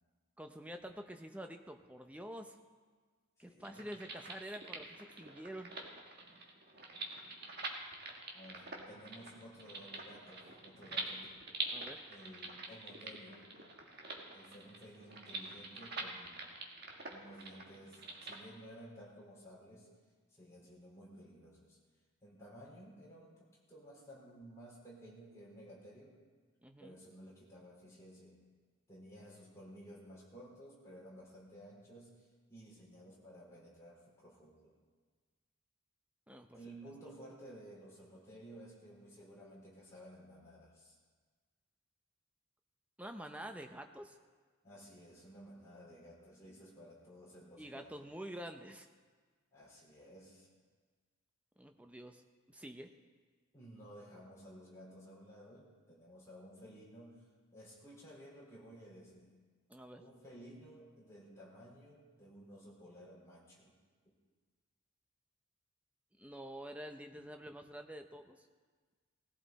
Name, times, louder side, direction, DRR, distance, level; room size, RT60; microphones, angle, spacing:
voice 1, 0.4-2.6 3.4-5.7 11.7-12.0 26.6-27.0 36.3-36.6 43.0-44.2 47.6-48.9 51.6-52.2 52.5-52.9 59.7-60.0 66.2-68.5, equal, 5° right, 6 dB, 0.7 m, -47 dB
voice 2, 3.4-3.9 8.3-11.4 12.1-13.5 14.3-16.5 17.1-19.9 20.3-21.8 22.2-26.2 26.8-28.4 28.9-34.8 36.5-41.0 44.6-48.1 49.5-50.5 53.5-59.4 60.0-63.7 64.0-64.1, equal, 15° left, -6 dB, 4.5 m, -55 dB
sound 1, 3.6-18.4, right 3 dB, 45° right, 1.8 m, -46 dB
19.0 x 14.5 x 4.2 m, 1.5 s
head